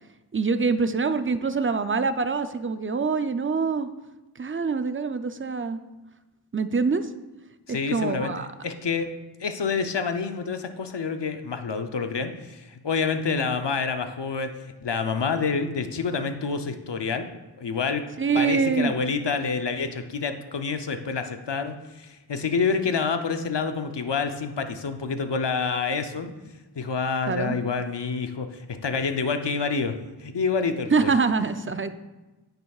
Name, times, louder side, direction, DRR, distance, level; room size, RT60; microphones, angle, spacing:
voice 1, 0.3-3.9 4.4-5.8 6.5-7.0 7.7-8.5 18.2-18.9 27.3-27.6 30.9-31.9, right 4 dB, 30° right, 10 dB, 0.5 m, -25 dB
voice 2, 7.7-8.3 8.6-9.1 9.4-14.5 14.8-17.3 17.6-18.1 18.3-26.3 26.7-30.0 30.2-31.1, left 5 dB, 80° left, 7 dB, 0.7 m, -27 dB
9.7 x 7.8 x 2.4 m, 1.1 s
wide cardioid pair, 45°, 42 cm